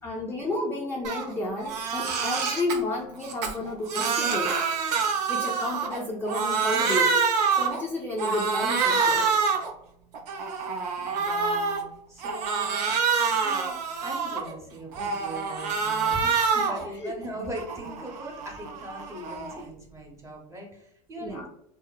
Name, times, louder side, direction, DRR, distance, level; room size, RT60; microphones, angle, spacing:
voice 1, 0.0-4.6 5.3-7.2 7.5-9.3 16.5-16.7 17.0-17.4 21.2-21.5, left 1 dB, 10° left, -3 dB, 0.4 m, -31 dB
Crying sobbing, 1.0-1.3 1.6-2.8 3.2-6.0 6.3-7.8 8.2-9.7 10.1-11.8 12.2-14.5 14.9-16.9 17.2-19.6, right 5 dB, 80° right, 0.5 m, -26 dB
voice 2, 10.6-13.0 13.4-21.5, right 1 dB, 15° right, 0 dB, 0.8 m, -40 dB
2.8 x 2.1 x 2.3 m, 0.75 s
hypercardioid pair, 100°, 21 cm